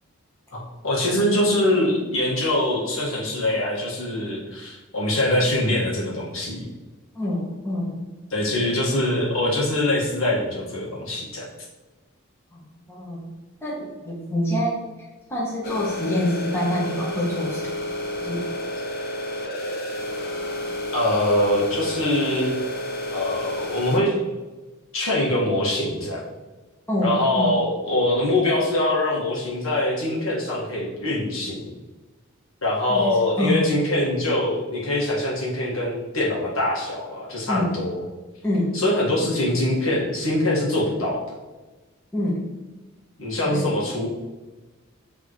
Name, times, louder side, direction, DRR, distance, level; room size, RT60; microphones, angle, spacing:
voice 1, 0.5-6.7 8.3-11.4 20.9-22.5 23.1-24.2 24.9-26.2 27.0-31.7 32.6-38.0 38.7-41.2 43.2-44.1, left 1 dB, 70° left, -4 dB, 1.8 m, -23 dB
voice 2, 7.1-8.1 12.5-13.3 13.6-14.8 15.3-17.6 18.2-18.4 26.9-27.6 32.9-33.7 37.5-37.8 38.4-38.9 42.1-42.5 43.5-43.6, left 1 dB, 10° left, -5 dB, 1.1 m, -26 dB
sound 1, 15.6-24.0, left 1 dB, 45° left, 0.8 m, -30 dB
8.9 x 3.5 x 3.1 m, 1.2 s
head